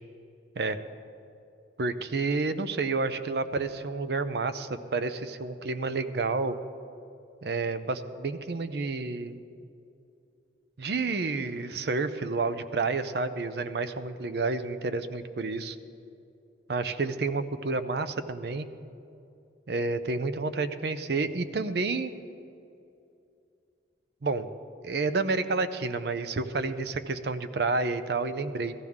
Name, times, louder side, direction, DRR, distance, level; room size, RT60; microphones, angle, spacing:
voice 1, 1.8-6.6 7.4-9.4 10.8-15.8 16.7-18.7 19.7-22.1 24.2-24.5 24.8-28.7, right 3 dB, 65° right, 11 dB, 0.5 m, -30 dB
15.0 x 15.0 x 3.6 m, 2.6 s
head